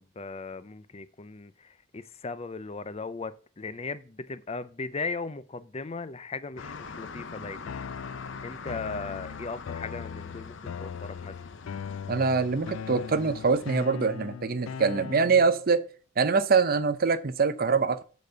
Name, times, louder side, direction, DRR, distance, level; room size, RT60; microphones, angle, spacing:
voice 1, 0.0-7.7 8.4-11.3, left 4 dB, 30° left, 0.5 m, -37 dB
sound 1, 6.6-13.9, left 4 dB, 65° left, 0.7 m, -44 dB
sound 2, 7.7-15.7, left 6 dB, 90° left, 0.4 m, -39 dB
voice 2, 12.1-15.8 16.2-18.0, right 4 dB, 45° right, 0.6 m, -24 dB
8.3 x 4.2 x 6.8 m
head